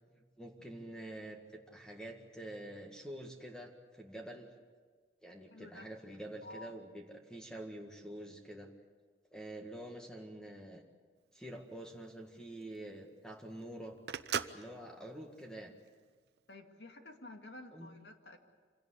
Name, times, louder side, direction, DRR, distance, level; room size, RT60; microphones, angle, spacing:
voice 1, 0.1-4.5 5.2-8.7 9.3-10.8 11.3-14.0 14.5-15.7 17.7-17.9, right 1 dB, 5° left, 2 dB, 1.8 m, -47 dB
voice 2, 5.5-5.9 6.4-6.7 14.9-15.1 16.5-18.4, left 2 dB, 75° left, 4 dB, 2.3 m, -51 dB
Telephone, 11.2-16.4, right 6 dB, 65° right, 0.8 m, -42 dB
26.0 x 17.5 x 8.4 m, 1.5 s
head